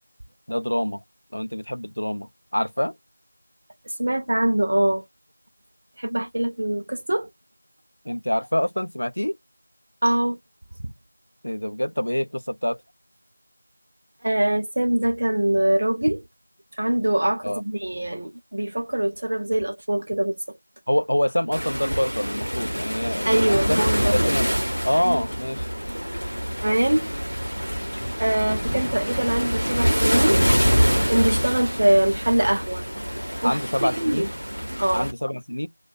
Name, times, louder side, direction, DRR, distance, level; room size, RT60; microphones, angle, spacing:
voice 1, 0.5-1.0 1.3-2.9 8.1-9.4 11.4-12.8 17.4-17.6 20.9-23.8 24.1-24.5 24.8-25.7 33.4-34.3 34.9-35.7, equal, 55° left, 0.4 m, -26 dB
voice 2, 4.0-5.0 6.0-7.3 10.0-10.4 14.2-16.2 16.8-20.4 23.3-24.2 25.0-25.2 26.6-27.1 28.2-30.5 31.0-32.8 33.4-34.2 34.8-35.1, right 1 dB, 25° right, 0.4 m, -23 dB
Waves surf, 21.5-35.1, equal, 85° right, 0.7 m, -25 dB
2.2 x 2.2 x 2.6 m
figure-of-eight pair, 175°, 0 cm